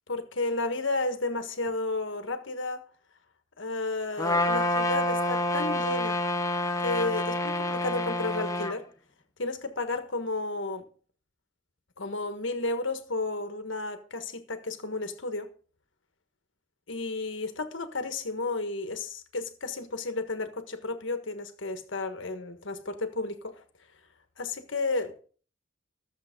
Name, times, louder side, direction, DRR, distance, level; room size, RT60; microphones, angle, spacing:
voice 1, 0.1-2.8 3.6-6.2 6.8-8.8 9.4-10.8 12.0-15.5 16.9-23.6 24.4-25.2, left 3 dB, 65° left, 1.5 m, -32 dB
Trumpet, 4.2-8.7, left 1 dB, 15° left, 0.9 m, -28 dB
14.5 x 7.4 x 5.2 m
head